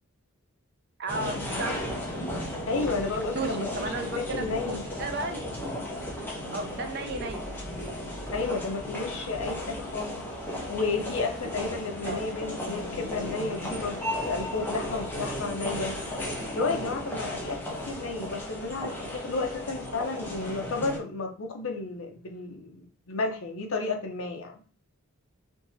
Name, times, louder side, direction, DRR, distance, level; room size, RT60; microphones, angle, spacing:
voice 1, 1.0-1.9 2.8-5.7 6.5-7.5 12.0-12.4, right 3 dB, 50° right, 6 dB, 0.5 m, -35 dB
sound 1, 1.1-21.0, left 1 dB, 10° left, 0.7 m, -35 dB
voice 2, 2.7-4.8 8.3-10.2 10.7-16.0 16.5-17.6 17.9-24.6, left 3 dB, 65° left, 3 dB, 0.7 m, -32 dB
3.6 x 2.8 x 2.6 m, 0.38 s
head